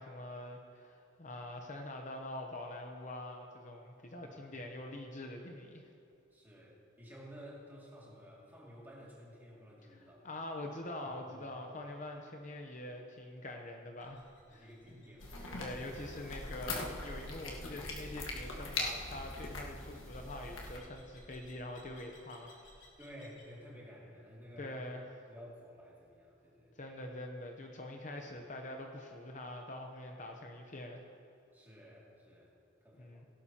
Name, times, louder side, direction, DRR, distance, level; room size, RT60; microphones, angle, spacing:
voice 1, 0.0-5.8 9.9-14.7 15.6-22.6 24.6-25.1 26.8-31.0 33.0-33.3, left 1 dB, 40° left, 2 dB, 0.8 m, -44 dB
voice 2, 4.3-4.7 6.3-10.2 11.0-11.6 14.5-15.9 23.0-24.8 25.3-26.7 31.5-32.5 32.8-33.3, equal, 10° right, -5 dB, 2.4 m, -53 dB
sound 1, 14.0-23.5, equal, 70° left, 2.7 m, -57 dB
sound 2, 15.2-20.8, left 2 dB, 90° left, 1.5 m, -41 dB
17.0 x 11.5 x 2.9 m, 2.6 s
head